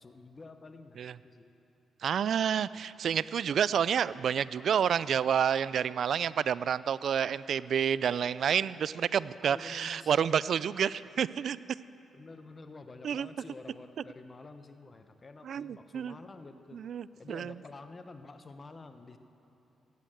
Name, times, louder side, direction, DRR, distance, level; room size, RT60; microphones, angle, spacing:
voice 1, 0.0-1.5 2.7-2.9 9.4-10.2 10.6-10.7 12.1-16.8 17.2-19.2, left 3 dB, 35° left, 8 dB, 0.9 m, -49 dB
voice 2, 2.0-11.6 13.0-13.3 15.5-16.1 16.7-17.5, right 8 dB, 65° right, 18 dB, 0.3 m, -29 dB
14.5 x 9.8 x 7.8 m, 2.9 s
cardioid pair, 75°, 0 cm